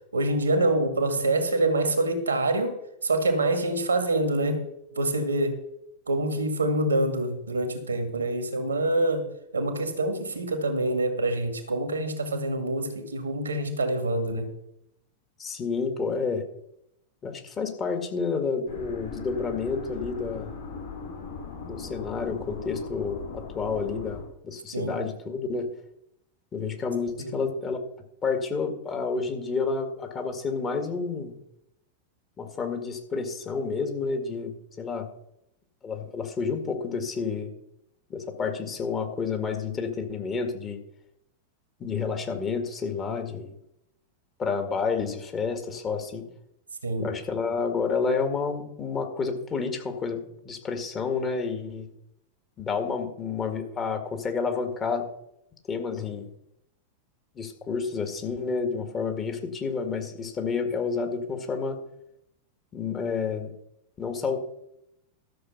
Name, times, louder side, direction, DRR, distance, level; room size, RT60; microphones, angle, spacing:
voice 1, 0.1-2.8 3.0-4.7 5.0-5.6 6.1-14.5 24.7-25.0 27.2-27.3 46.8-47.1, right 2 dB, 75° right, 7 dB, 1.9 m, -26 dB
voice 2, 15.4-16.5 17.2-20.5 21.6-25.7 26.5-27.8 28.2-31.3 32.4-35.1 35.8-37.5 38.1-40.8 41.8-43.5 44.4-46.2 47.0-51.9 52.6-55.1 55.7-56.3 57.4-61.8 62.7-63.5 64.0-64.4, left 5 dB, 25° left, 5 dB, 2.0 m, -30 dB
sound 1, 18.7-24.3, left 4 dB, 65° left, 4.0 m, -39 dB
13.0 x 6.7 x 5.6 m, 0.78 s
figure-of-eight pair, 90°, 0 cm